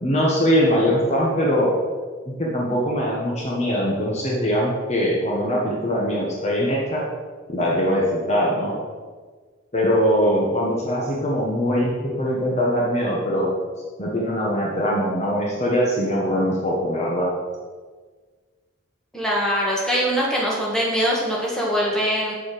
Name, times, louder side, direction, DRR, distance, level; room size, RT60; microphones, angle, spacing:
voice 1, 0.0-1.7 2.3-7.0 7.5-8.7 9.7-13.5 14.0-17.3, equal, 35° left, -4 dB, 1.3 m, -22 dB
voice 2, 19.1-22.3, equal, 5° left, -5 dB, 1.9 m, -22 dB
8.3 x 7.1 x 5.0 m, 1.5 s
head